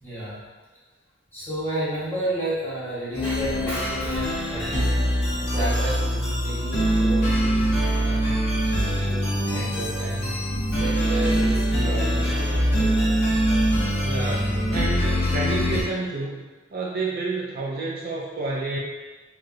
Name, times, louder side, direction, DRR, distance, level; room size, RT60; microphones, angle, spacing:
voice 1, 0.0-0.4 1.3-5.0 5.5-8.3 8.6-10.4 10.7-13.0, right 1 dB, 10° left, -11 dB, 1.2 m, -32 dB
sound 1, 3.1-15.8, equal, 55° left, 0.9 m, -23 dB
voice 2, 14.0-18.8, right 3 dB, 50° right, -4 dB, 0.4 m, -29 dB
3.3 x 2.3 x 2.6 m, 1.3 s
head